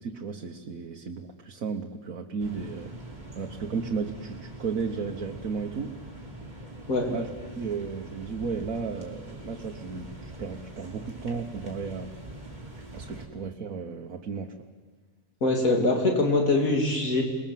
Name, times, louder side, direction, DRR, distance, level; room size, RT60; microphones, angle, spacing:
voice 1, 0.0-2.9 3.3-6.1 7.1-12.2 12.9-14.6, right 5 dB, 85° right, 2 dB, 1.6 m, -34 dB
sound 1, 2.4-13.3, right 1 dB, 30° right, 3.5 m, -43 dB
voice 2, 15.4-17.2, left 2 dB, 85° left, 1 dB, 3.3 m, -23 dB
27.5 x 20.5 x 7.5 m, 1.5 s
omnidirectional pair, 1.4 m